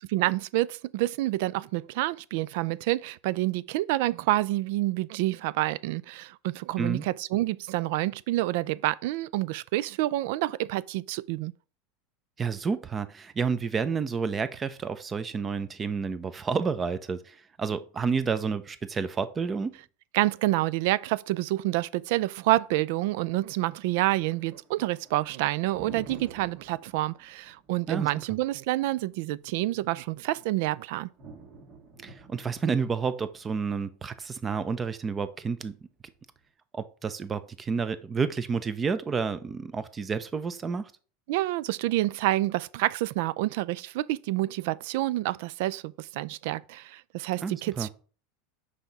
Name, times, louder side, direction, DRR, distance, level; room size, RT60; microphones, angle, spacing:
voice 1, 0.0-11.5 20.1-31.1 41.3-47.9, right 17 dB, 70° right, 0.3 m, -28 dB
voice 2, 12.4-19.8 27.9-28.1 32.0-35.8 36.7-40.9 47.4-47.9, right 5 dB, 25° right, 0.6 m, -30 dB
Thunder, 22.4-36.4, right 4 dB, 50° right, 1.8 m, -52 dB
5.7 x 4.9 x 4.1 m
supercardioid pair, 120°, 0 cm